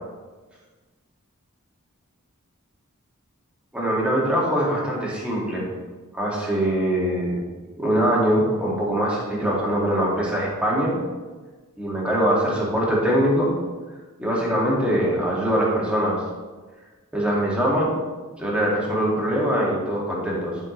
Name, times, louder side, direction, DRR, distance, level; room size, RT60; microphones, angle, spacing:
voice 1, 3.7-5.6 6.1-7.4 7.8-10.9 11.8-13.5 14.2-16.2 17.1-18.0 18.4-20.6, equal, 5° right, -5 dB, 2.1 m, -22 dB
11.5 x 6.1 x 3.2 m, 1.3 s
head